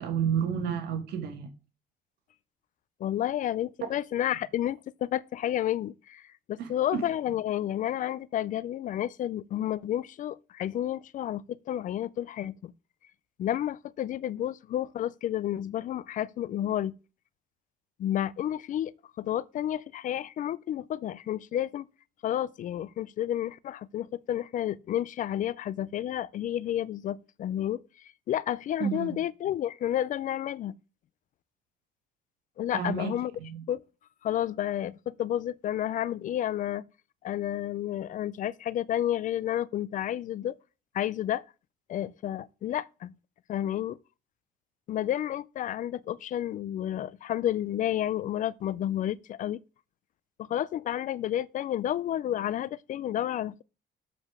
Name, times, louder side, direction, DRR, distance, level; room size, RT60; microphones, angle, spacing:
voice 1, 0.0-1.5 6.6-7.0 28.8-29.2 32.7-33.1 33.4-33.6, right 8 dB, 75° right, 1.7 m, -31 dB
voice 2, 3.0-6.2 6.5-12.7 13.4-16.9 18.0-18.9 19.2-21.9 22.2-27.8 28.3-30.7 32.6-33.3 33.7-33.8 34.2-36.8 37.2-40.5 40.9-41.4 41.9-43.1 43.5-44.0 44.9-49.6 50.4-53.6, left 11 dB, 50° left, 0.4 m, -31 dB
7.5 x 5.0 x 6.0 m
cardioid pair, 110°, 17 cm